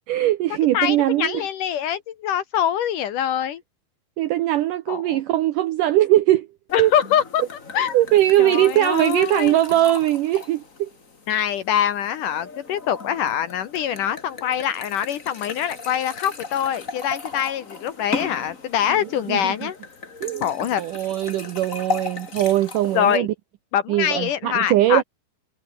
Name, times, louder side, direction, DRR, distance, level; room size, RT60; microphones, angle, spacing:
voice 1, 0.1-1.5 4.2-6.5 6.8-6.9 7.9-10.9 18.9-19.0 19.3-19.7 20.2-20.4 20.8-23.3 23.9-25.0, right 14 dB, 75° right, 1.9 m, -20 dB
voice 2, 0.7-3.6 4.9-5.2 6.7-7.4 7.7-7.9 8.4-9.6 11.3-19.8 20.4-20.8 22.9-23.3 23.7-25.0, left 10 dB, 65° left, 2.3 m, -24 dB
sound 1, 6.7-23.2, left 4 dB, 25° left, 2.0 m, -36 dB
omnidirectional pair, 4.7 m